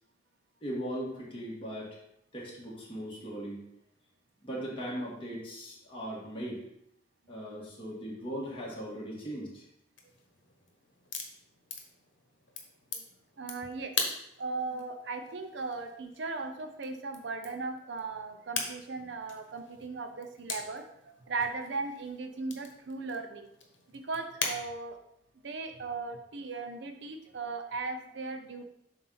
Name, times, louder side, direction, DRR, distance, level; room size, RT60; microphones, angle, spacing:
voice 1, 0.6-2.0 2.3-3.6 4.4-6.6 7.3-9.6, equal, 30° left, -5 dB, 1.9 m, -38 dB
sound 1, 10.0-24.6, left 5 dB, 85° left, 1.1 m, -42 dB
voice 2, 13.4-13.9 14.4-20.9 21.3-23.5 23.9-25.0 25.4-28.6, right 3 dB, 65° right, 6 dB, 0.6 m, -37 dB
7.5 x 2.7 x 5.8 m, 0.77 s
head